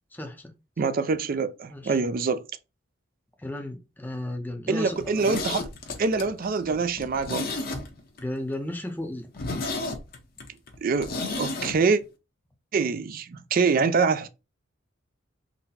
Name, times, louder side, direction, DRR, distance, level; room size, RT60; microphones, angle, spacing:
voice 1, 0.1-0.5 1.7-2.0 3.4-5.2 8.2-9.3, left 1 dB, 10° left, 0.6 m, -34 dB
voice 2, 0.8-2.4 4.7-5.7 6.0-7.6 10.8-12.0 12.7-14.3, right 4 dB, 45° right, 0.4 m, -25 dB
Zipper (clothing), 4.9-8.2 8.5-8.6 9.0-9.1 9.3-11.8 12.0-12.1, left 3 dB, 50° left, 0.8 m, -33 dB
4.0 x 2.1 x 4.1 m
head